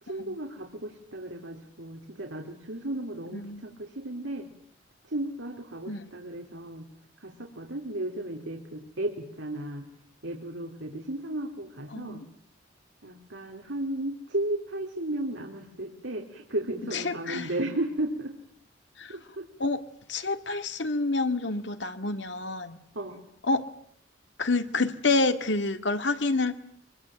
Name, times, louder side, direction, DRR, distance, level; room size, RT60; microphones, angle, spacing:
voice 1, 0.0-4.5 5.0-6.9 7.2-9.9 10.2-12.2 13.0-18.4 19.1-19.5 22.9-23.3, right 1 dB, 85° right, 1 dB, 3.5 m, -34 dB
voice 2, 3.3-3.6 5.9-6.1 11.9-12.2 16.9-17.5 19.0-19.1 19.6-19.8 20.1-22.8 23.5-23.6 24.4-26.5, left 3 dB, 65° left, 8 dB, 2.1 m, -28 dB
24.5 x 24.0 x 9.1 m, 0.65 s
head